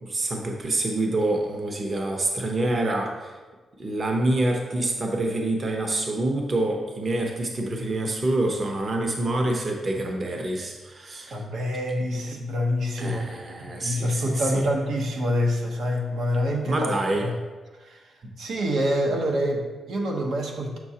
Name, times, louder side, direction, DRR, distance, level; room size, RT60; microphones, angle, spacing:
voice 1, 0.0-3.3 3.8-11.3 13.0-14.7 16.6-17.3, right 2 dB, 35° right, 1 dB, 0.8 m, -26 dB
voice 2, 11.3-13.2 13.6-17.3 17.8-20.8, equal, 75° right, 1 dB, 1.0 m, -26 dB
7.1 x 6.1 x 2.8 m, 1.3 s
wide cardioid pair, 135°, 0 cm